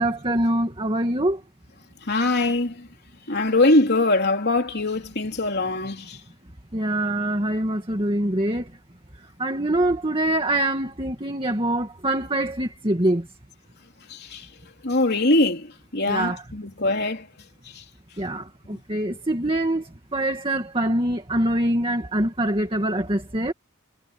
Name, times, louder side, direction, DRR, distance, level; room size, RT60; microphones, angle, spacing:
voice 1, 0.0-1.4 6.7-8.7 9.4-13.3 16.0-16.4 18.2-23.5, right 1 dB, 25° right, 2.0 m, -24 dB
voice 2, 2.1-2.9 3.3-6.2 14.1-14.5 14.8-17.3 17.7-17.8, left 2 dB, 50° left, 3.7 m, -22 dB
head